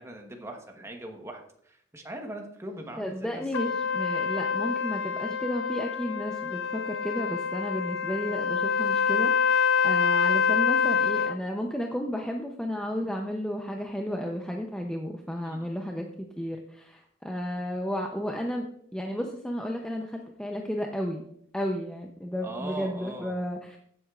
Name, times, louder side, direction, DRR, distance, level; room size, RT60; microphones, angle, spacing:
voice 1, 0.0-3.4 15.4-15.7 22.4-23.4, right 1 dB, 15° right, 3 dB, 1.1 m, -40 dB
voice 2, 3.0-16.1 16.4-21.3 21.5-23.8, equal, 5° left, 1 dB, 0.6 m, -33 dB
Trumpet, 3.5-11.4, left 6 dB, 70° left, 0.5 m, -26 dB
15.5 x 7.9 x 2.4 m, 0.69 s
head